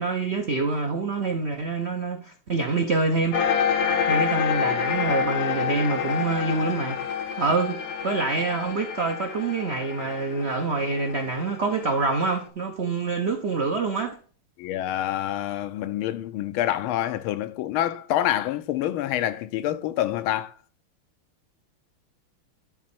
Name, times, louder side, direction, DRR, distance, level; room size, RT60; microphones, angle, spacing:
voice 1, 0.0-3.4 4.1-7.0 7.4-14.2, right 3 dB, 70° right, 0.6 m, -26 dB
sound 1, 3.3-12.3, left 8 dB, 65° left, 1.0 m, -28 dB
voice 2, 14.6-20.5, left 12 dB, 85° left, 1.5 m, -27 dB
11.0 x 4.0 x 4.4 m
omnidirectional pair, 2.3 m